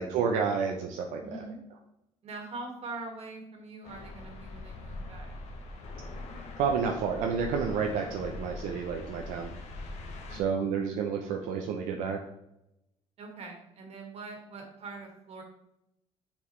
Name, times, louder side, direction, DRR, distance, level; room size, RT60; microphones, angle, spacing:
voice 1, 0.0-1.2 6.6-9.5 10.3-12.2, right 6 dB, 85° right, 2 dB, 0.7 m, -30 dB
voice 2, 1.2-1.6 2.2-5.3 10.3-10.8 13.2-15.4, right 3 dB, 50° right, 2 dB, 1.9 m, -43 dB
sound 1, 3.8-10.4, left 2 dB, 60° left, 1.2 m, -42 dB
7.0 x 4.7 x 3.2 m, 0.84 s
cardioid pair, 100°, 13 cm